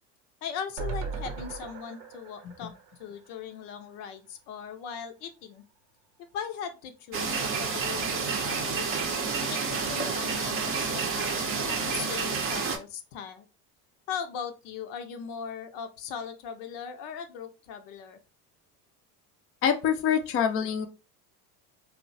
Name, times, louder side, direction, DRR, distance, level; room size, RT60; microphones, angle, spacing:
voice 1, 0.4-2.7 3.0-5.6 6.3-8.0 8.4-9.0 9.4-13.5 14.1-18.2, left 7 dB, 70° left, 7 dB, 0.6 m, -39 dB
sound 1, 0.8-4.0 4.4-4.5 4.7-4.8, right 4 dB, 85° right, 0.7 m, -38 dB
sound 2, 7.1-12.8, right 5 dB, 30° right, 0.6 m, -29 dB
voice 2, 19.6-20.9, left 8 dB, 30° left, 6 dB, 0.4 m, -25 dB
3.0 x 2.1 x 2.6 m, 0.30 s
hypercardioid pair, 80°, 47 cm